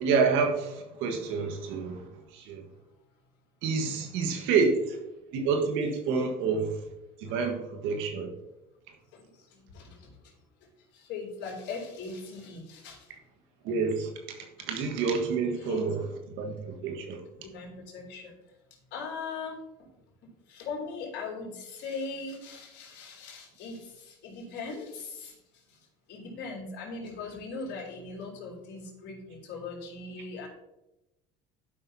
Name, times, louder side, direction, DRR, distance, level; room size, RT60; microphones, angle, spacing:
voice 1, 0.0-2.7 3.6-5.0 5.3-6.8 7.2-8.3 13.6-14.1 14.4-16.0 16.4-17.2, right 5 dB, 75° right, 4 dB, 1.5 m, -28 dB
voice 2, 9.5-10.1 10.9-13.1 14.6-14.7 15.4-15.8 17.4-18.4 18.9-19.6 20.5-25.3 26.1-30.5, left 4 dB, 60° left, -1 dB, 3.0 m, -39 dB
12.0 x 5.7 x 2.8 m, 0.95 s
supercardioid pair, 85°, 20 cm